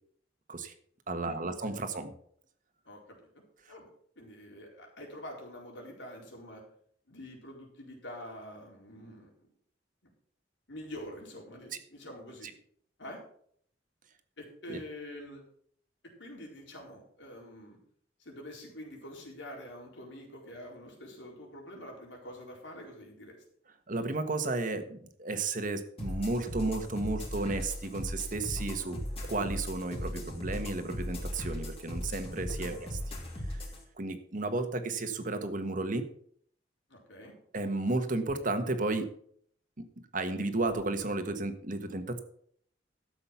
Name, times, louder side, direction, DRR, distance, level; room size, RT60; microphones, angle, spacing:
voice 1, 1.1-2.1 14.7-14.8 23.9-29.0 29.3-33.0 33.5-33.6 34.0-36.1 37.5-39.1 39.8-39.9 40.1-42.2, right 2 dB, 45° right, 8 dB, 1.4 m, -33 dB
voice 2, 2.9-3.2 3.7-3.9 4.2-6.6 7.1-9.3 10.7-12.5 13.0-13.2 14.4-15.4 16.2-17.8 18.2-23.4 32.6-32.8 36.9-37.3, left 1 dB, 90° left, 0 dB, 4.3 m, -46 dB
sound 1, 26.0-33.8, equal, 35° left, 3.1 m, -38 dB
13.0 x 7.6 x 5.8 m, 0.62 s
head